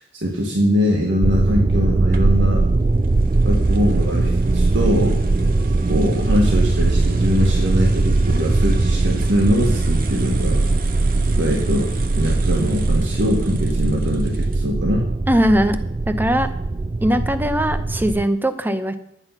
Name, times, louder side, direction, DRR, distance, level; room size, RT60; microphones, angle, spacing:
voice 1, 0.2-2.6 3.4-5.2 5.9-10.6 11.4-11.9 12.2-15.1, equal, 80° right, -1 dB, 1.8 m, -22 dB
sound 1, 1.2-18.3, right 2 dB, 30° right, 0.4 m, -20 dB
sound 2, 2.1-14.8, right 2 dB, 50° right, 1.1 m, -35 dB
voice 2, 15.3-15.8 16.1-16.5 17.0-18.9, equal, 10° right, 10 dB, 0.7 m, -19 dB
11.0 x 9.1 x 5.8 m, 0.80 s
head